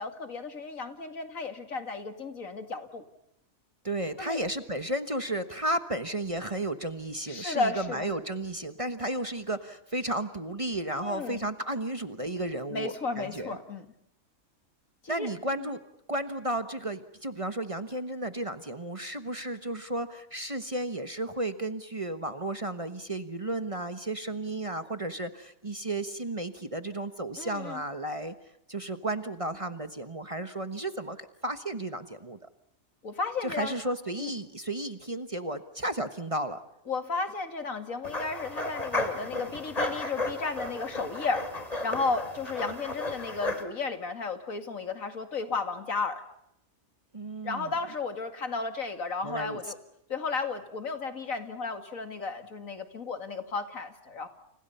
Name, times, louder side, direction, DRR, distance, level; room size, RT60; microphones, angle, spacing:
voice 1, 0.0-3.0 4.2-4.4 7.3-8.1 11.0-11.4 12.7-13.9 15.0-15.3 15.6-15.7 27.4-27.8 33.0-33.8 34.2-34.3 36.9-41.5 41.8-46.2 47.4-49.7 50.1-54.3, left 4 dB, 75° left, 7 dB, 2.6 m, -33 dB
voice 2, 3.8-13.6 15.1-15.8 16.1-28.3 28.7-32.4 33.4-36.6 47.1-47.7 49.2-49.6, right 1 dB, 25° right, 9 dB, 1.2 m, -33 dB
sound 1, 38.0-43.6, left 2 dB, 30° left, 2.8 m, -34 dB
30.0 x 29.5 x 5.6 m, 0.78 s
omnidirectional pair, 1.4 m